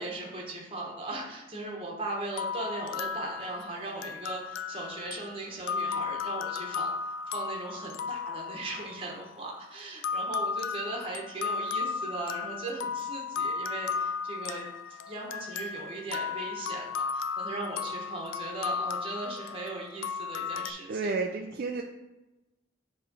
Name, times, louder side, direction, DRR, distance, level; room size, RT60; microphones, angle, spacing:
voice 1, 0.0-21.1, right 2 dB, 30° right, -2 dB, 1.0 m, -38 dB
sound 1, 2.3-9.4 10.0-20.7, left 5 dB, 85° left, 0.4 m, -35 dB
voice 2, 20.9-21.8, right 3 dB, 50° right, 2 dB, 0.4 m, -31 dB
7.4 x 3.1 x 5.2 m, 1.0 s
head